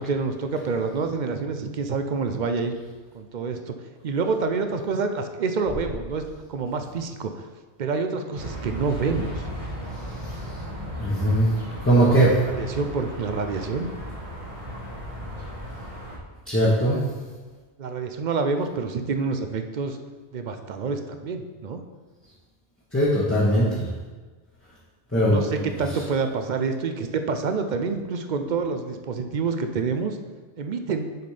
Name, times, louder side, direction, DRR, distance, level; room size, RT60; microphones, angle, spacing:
voice 1, 0.0-2.7 3.1-3.8 4.0-7.5 7.8-9.4 12.4-13.9 17.8-20.0 20.3-21.8 25.1-30.2 30.6-31.1, right 4 dB, 55° right, 7 dB, 0.5 m, -27 dB
sound 1, 8.3-16.2, equal, 30° right, 1.1 m, -35 dB
voice 2, 11.0-11.5 11.8-12.3 16.5-17.0 22.9-23.8 25.1-25.4, right 1 dB, 10° left, -8 dB, 1.1 m, -19 dB
6.7 x 4.3 x 4.9 m, 1.4 s
omnidirectional pair, 1.1 m